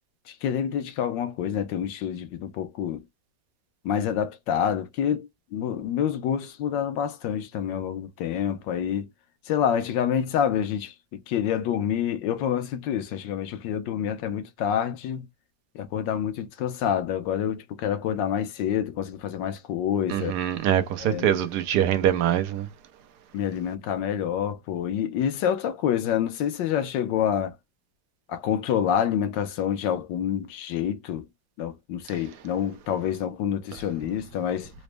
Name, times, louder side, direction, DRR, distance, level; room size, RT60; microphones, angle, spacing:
voice 1, 0.3-3.0 3.8-9.1 9.5-10.9 11.3-15.3 15.7-20.4 21.0-21.4 23.3-27.5 28.3-31.3 31.6-34.7, left 9 dB, 85° left, 1.3 m, -27 dB
voice 2, 20.1-22.7, right 10 dB, 70° right, 1.2 m, -24 dB
4.0 x 2.1 x 3.2 m
omnidirectional pair, 2.0 m